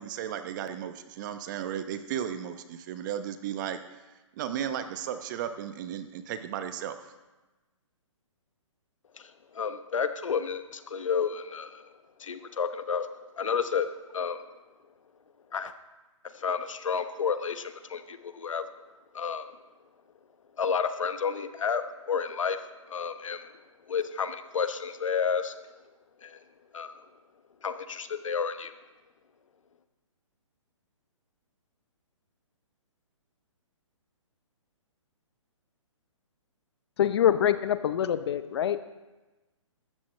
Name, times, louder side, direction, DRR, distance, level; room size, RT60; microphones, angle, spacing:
voice 1, 0.0-4.0 4.3-7.1, right 9 dB, 35° right, 10 dB, 0.9 m, -35 dB
voice 2, 9.1-11.9 12.2-13.1 13.4-14.5 15.5-15.7 16.2-18.6 19.1-19.5 20.6-23.5 23.9-25.5 26.2-26.4 26.7-27.0 27.6-28.7, left 6 dB, 75° left, 10 dB, 1.0 m, -31 dB
voice 3, 37.0-38.8, left 10 dB, 55° left, 12 dB, 0.7 m, -25 dB
15.0 x 13.0 x 3.3 m, 1.1 s
hypercardioid pair, 140°, 17 cm